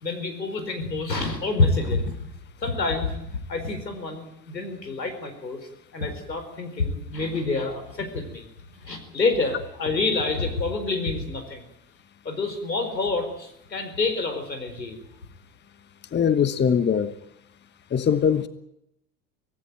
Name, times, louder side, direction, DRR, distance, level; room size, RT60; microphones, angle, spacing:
voice 1, 0.0-2.2 2.6-5.6 5.9-8.5 8.7-11.6 12.2-15.0, left 3 dB, 80° left, 7 dB, 4.7 m, -27 dB
voice 2, 16.1-17.1 17.9-18.5, left 7 dB, 20° left, 13 dB, 1.3 m, -21 dB
24.5 x 18.0 x 9.1 m, 0.79 s
figure-of-eight pair, 75°, 50 cm